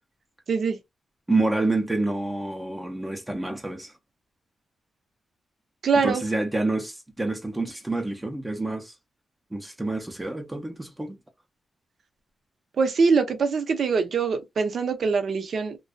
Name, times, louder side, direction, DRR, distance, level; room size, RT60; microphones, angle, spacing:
voice 1, 0.5-0.8 5.8-6.2 12.8-15.8, right 5 dB, 70° right, 0.6 m, -23 dB
voice 2, 1.3-3.9 6.0-8.9 9.5-11.2, right 2 dB, 15° right, 0.6 m, -28 dB
2.5 x 2.2 x 2.3 m
cardioid pair, 70°, 0 cm